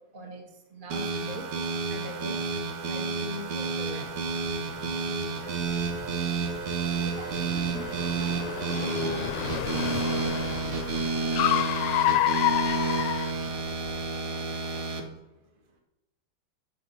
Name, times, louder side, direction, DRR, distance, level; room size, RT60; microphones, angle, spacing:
voice 1, 0.1-0.4 0.7-1.4 1.9-2.3 2.9-4.1, equal, 25° right, 1 dB, 1.5 m, -40 dB
sound 1, 0.9-15.0, right 4 dB, 80° right, 2.3 m, -30 dB
Car, 4.1-14.0, left 14 dB, 80° left, 1.4 m, -31 dB
voice 2, 6.8-12.0, right 3 dB, 55° right, -1 dB, 3.2 m, -47 dB
13.0 x 5.1 x 6.9 m, 0.94 s
omnidirectional pair, 2.4 m